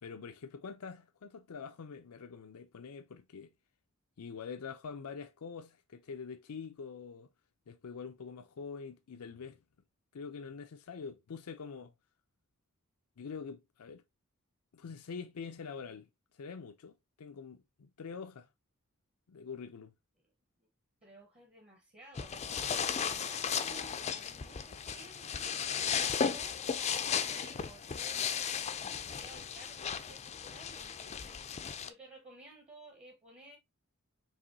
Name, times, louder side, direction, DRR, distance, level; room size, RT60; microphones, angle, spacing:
voice 1, 0.0-3.5 4.2-7.3 7.7-9.6 10.1-11.9 13.2-14.0 14.7-16.1 16.4-18.5 19.3-19.9, left 5 dB, 85° left, 0.5 m, -45 dB
voice 2, 21.0-22.4 22.9-25.8 26.1-33.6, right 2 dB, 30° right, 0.9 m, -55 dB
sound 1, 22.1-31.9, left 7 dB, 30° left, 0.4 m, -35 dB
4.8 x 3.0 x 2.6 m
head